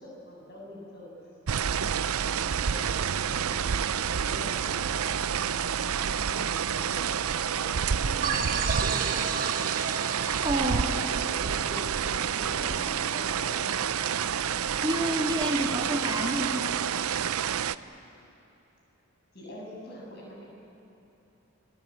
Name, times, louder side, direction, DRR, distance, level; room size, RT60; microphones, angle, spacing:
voice 1, 0.0-2.1 2.3-3.7 4.2-9.2 10.6-14.0 19.3-20.4, equal, 50° left, -2 dB, 7.3 m, -45 dB
sound 1, 1.5-17.7, right 7 dB, 90° right, 0.6 m, -29 dB
sound 2, 8.2-12.7, right 5 dB, 40° right, 1.6 m, -34 dB
voice 2, 10.4-10.9 14.8-16.7, equal, 20° right, 1 dB, 2.1 m, -29 dB
28.0 x 18.5 x 8.9 m, 2.9 s
head